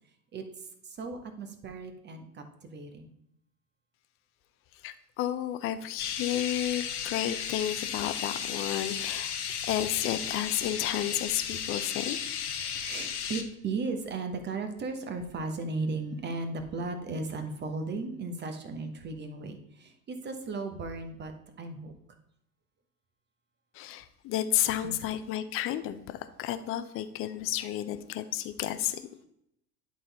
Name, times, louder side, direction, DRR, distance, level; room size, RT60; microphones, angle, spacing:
voice 1, 0.9-3.1 12.6-21.9 24.8-25.0, right 3 dB, 20° right, 7 dB, 1.1 m, -36 dB
voice 2, 4.8-9.3 9.6-12.2 23.7-29.1, left 12 dB, 30° left, 11 dB, 0.6 m, -32 dB
sound 1, 6.0-13.4, left 8 dB, 70° left, 1.1 m, -34 dB
10.5 x 4.2 x 4.1 m, 0.76 s
figure-of-eight pair, 85°, 47 cm